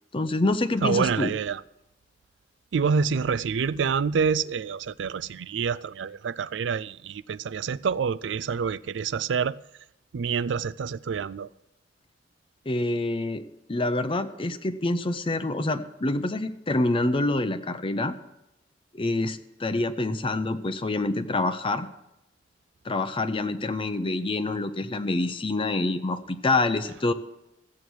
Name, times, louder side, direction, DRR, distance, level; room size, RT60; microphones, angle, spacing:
voice 1, 0.1-1.3 12.7-18.1 18.9-21.9 22.8-27.1, left 2 dB, 30° left, 0.6 m, -26 dB
voice 2, 0.8-1.6 2.7-9.6 10.1-11.5, right 6 dB, 80° right, 0.4 m, -27 dB
14.5 x 8.5 x 6.2 m
head